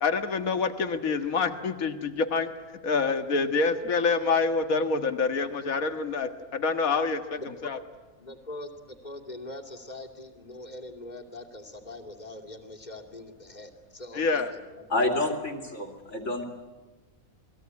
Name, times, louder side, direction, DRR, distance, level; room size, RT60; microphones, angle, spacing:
voice 1, 0.0-2.5 2.8-7.8 14.1-14.5, left 4 dB, 70° left, 8 dB, 2.0 m, -27 dB
voice 2, 7.4-7.7 8.2-15.3 15.7-15.8, left 2 dB, 30° left, 2 dB, 2.8 m, -43 dB
voice 3, 14.9-16.4, left 2 dB, 55° left, 4 dB, 3.2 m, -28 dB
28.5 x 20.5 x 9.6 m, 1.3 s
omnidirectional pair, 1.5 m